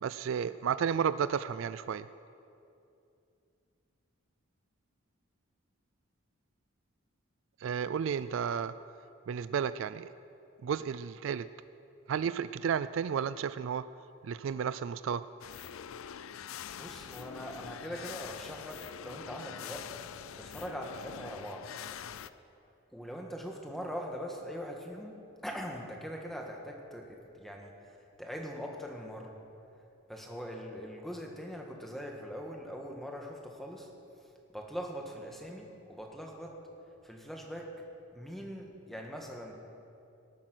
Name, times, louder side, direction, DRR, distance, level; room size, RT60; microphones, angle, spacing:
voice 1, 0.0-2.1 7.6-8.7 9.3-10.1 10.6-11.5 12.1-13.8 14.2-15.2, right 7 dB, 65° right, 14 dB, 0.3 m, -32 dB
sound 1, 15.4-22.3, left 8 dB, 80° left, 0.4 m, -44 dB
voice 2, 16.7-19.9 20.3-21.7 22.9-25.2 25.4-29.3 30.1-33.9 34.5-36.6 37.0-37.8 38.1-39.5, equal, ahead, 0 dB, 1.5 m, -42 dB
19.0 x 8.8 x 6.1 m, 2.7 s
head